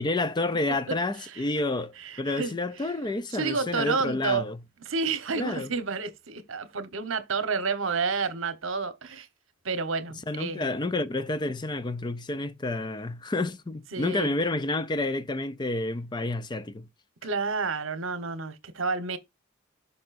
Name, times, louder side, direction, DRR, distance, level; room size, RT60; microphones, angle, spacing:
voice 1, 0.0-4.6 5.4-5.7 10.3-16.9, left 2 dB, 20° left, 0.4 m, -29 dB
voice 2, 2.0-2.5 2.8-2.9 3.3-4.4 4.8-9.3 9.6-10.7 13.9-14.3 17.2-19.2, right 4 dB, 65° right, 1.1 m, -30 dB
10.5 x 5.5 x 2.6 m
head